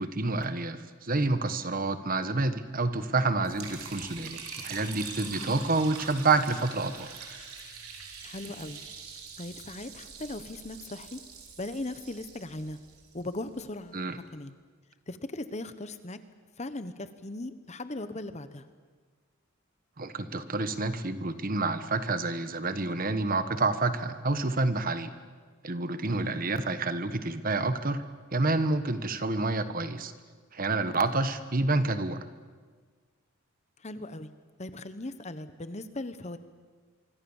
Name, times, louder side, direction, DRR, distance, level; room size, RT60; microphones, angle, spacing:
voice 1, 0.0-7.1 13.9-14.2 20.0-25.1 25.6-28.0 28.3-30.1 30.5-32.3, right 3 dB, 40° right, 11 dB, 1.3 m, -28 dB
Liquid, 3.4-13.6, right 5 dB, 80° right, 4.3 m, -44 dB
voice 2, 5.3-5.7 8.2-8.8 9.4-11.2 11.6-12.8 13.1-14.0 14.3-14.5 15.1-16.2 16.6-18.6 26.0-26.4 33.8-34.3 34.6-36.4, left 2 dB, 30° left, 11 dB, 1.1 m, -38 dB
25.5 x 24.5 x 7.2 m, 1.6 s
head